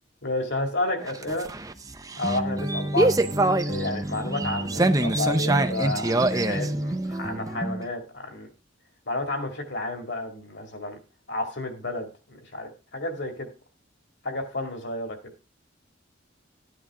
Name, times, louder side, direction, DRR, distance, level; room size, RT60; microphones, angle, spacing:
voice 1, 0.2-1.5 2.2-8.5 9.1-11.0 11.3-13.5 14.2-15.2, left 2 dB, 60° left, 4 dB, 2.3 m, -31 dB
sound 1, 1.0-7.8, right 2 dB, 15° right, 0.6 m, -25 dB
13.0 x 9.7 x 3.7 m, 0.32 s
head